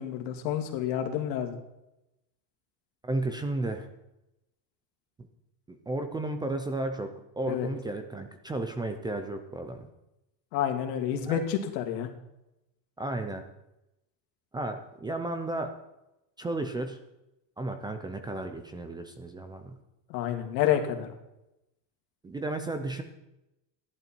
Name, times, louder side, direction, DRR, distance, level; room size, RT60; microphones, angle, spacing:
voice 1, 0.0-1.6 7.5-7.7 10.5-12.1 20.1-21.1, left 10 dB, 85° left, 4 dB, 2.4 m, -29 dB
voice 2, 3.0-3.9 5.2-5.3 5.7-7.1 7.4-9.9 11.3-11.4 13.0-13.4 14.5-15.7 16.4-17.0 17.6-19.8 22.2-23.0, right 2 dB, 10° right, 7 dB, 0.5 m, -33 dB
15.0 x 11.0 x 4.5 m, 0.91 s
cardioid pair, 155°, 49 cm